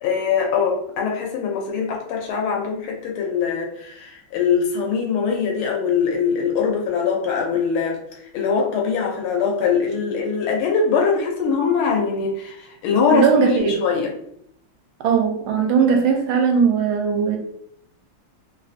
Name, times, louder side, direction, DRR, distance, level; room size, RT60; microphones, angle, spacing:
voice 1, 0.0-14.1, left 6 dB, 90° left, 1 dB, 1.5 m, -22 dB
voice 2, 13.1-13.8 15.0-17.4, right 6 dB, 85° right, 3 dB, 1.4 m, -18 dB
3.5 x 2.4 x 2.6 m, 0.70 s
omnidirectional pair, 2.2 m